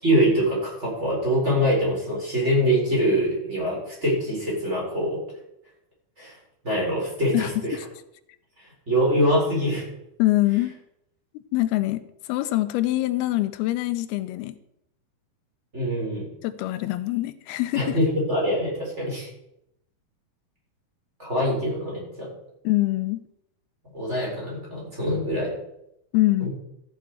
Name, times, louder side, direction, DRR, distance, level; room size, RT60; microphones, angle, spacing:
voice 1, 0.0-5.2 6.2-6.3 6.6-7.8 8.9-9.8 15.7-16.3 17.7-19.3 21.2-22.3 23.9-25.5 26.4-26.5, equal, 15° right, -4 dB, 4.3 m, -24 dB
voice 2, 7.3-7.9 10.2-10.8 11.3-12.0 12.3-14.6 16.4-18.0 22.6-23.2 26.1-26.5, left 17 dB, 85° left, 11 dB, 2.5 m, -24 dB
13.5 x 8.3 x 4.7 m, 0.80 s
omnidirectional pair, 4.4 m